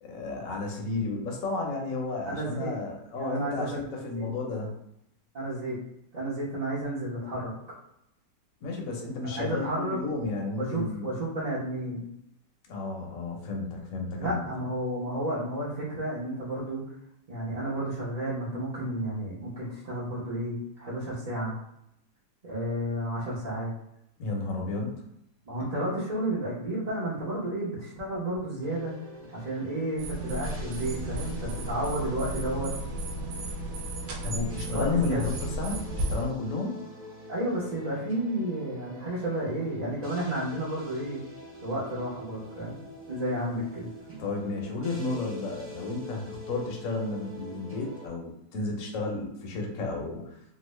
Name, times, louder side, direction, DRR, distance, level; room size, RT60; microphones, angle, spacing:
voice 1, 0.0-4.7 8.6-11.1 12.7-14.4 24.2-25.0 34.2-36.8 44.2-50.2, left 3 dB, 60° left, 0 dB, 1.1 m, -32 dB
voice 2, 2.3-2.7 3.1-4.3 5.3-5.8 6.1-7.5 9.2-10.0 10.6-12.0 14.2-16.8 17.3-21.5 22.4-23.7 25.4-28.9 29.3-32.7 34.7-35.3 37.3-41.2 41.6-42.8 43.1-43.9, right 1 dB, 35° right, -10 dB, 0.6 m, -32 dB
sound 1, 28.6-48.1, left 1 dB, 10° right, 0.9 m, -46 dB
sound 2, 30.0-36.2, right 1 dB, 65° right, 0.9 m, -34 dB
3.0 x 2.5 x 3.1 m, 0.77 s
omnidirectional pair, 2.0 m